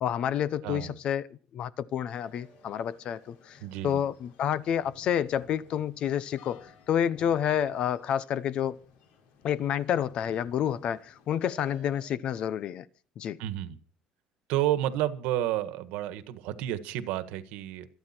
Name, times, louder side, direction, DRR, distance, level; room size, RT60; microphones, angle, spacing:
voice 1, 0.0-1.2 1.5-3.6 3.8-8.8 9.4-12.8 13.2-13.4, left 9 dB, 40° left, 0.7 m, -29 dB
voice 2, 0.6-1.0 3.6-4.0 13.4-13.8 14.5-17.9, right 13 dB, 90° right, 1.6 m, -30 dB
sound 1, 2.1-12.1, left 4 dB, 85° left, 5.0 m, -56 dB
26.0 x 9.2 x 4.4 m
cardioid pair, 180°, 3 cm